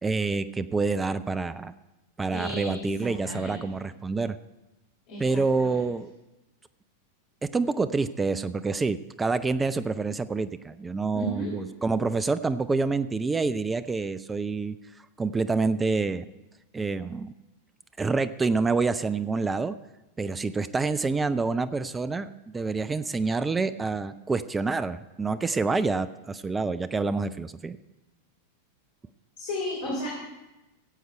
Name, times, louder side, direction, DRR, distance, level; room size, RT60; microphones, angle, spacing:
voice 1, 0.0-1.7 2.2-4.4 5.2-6.1 7.5-14.8 15.2-16.3 16.7-17.3 18.0-19.7 20.2-27.8, right 4 dB, 15° right, 13 dB, 0.4 m, -27 dB
voice 2, 2.3-3.6 5.1-5.7 11.1-11.5 29.4-30.1, left 1 dB, 50° left, -3 dB, 3.3 m, -34 dB
17.0 x 7.9 x 4.5 m, 1.0 s
figure-of-eight pair, 90°, 0 cm